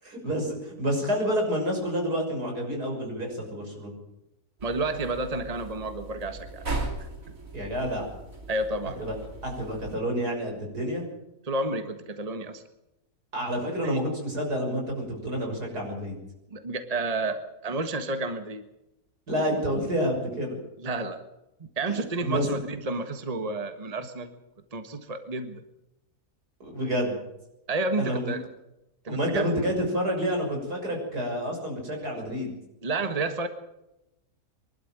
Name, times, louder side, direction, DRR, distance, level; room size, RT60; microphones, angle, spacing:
voice 1, 0.0-3.9 7.5-8.1 9.0-9.2 9.4-11.1 13.3-16.2 19.3-20.6 21.9-22.5 26.6-27.2 28.0-28.3 29.1-32.5, equal, 85° right, 1 dB, 7.0 m, -29 dB
voice 2, 4.6-6.6 7.0-7.1 8.5-9.1 11.4-12.6 13.8-14.0 16.5-18.6 20.8-21.2 21.8-24.3 24.7-25.6 27.7-28.4 29.0-29.5 32.8-33.5, right 2 dB, 25° right, 8 dB, 1.6 m, -30 dB
sound 1, 4.6-10.0, right 2 dB, 60° right, 3.4 m, -38 dB
24.0 x 12.0 x 9.0 m, 0.89 s
omnidirectional pair, 1.6 m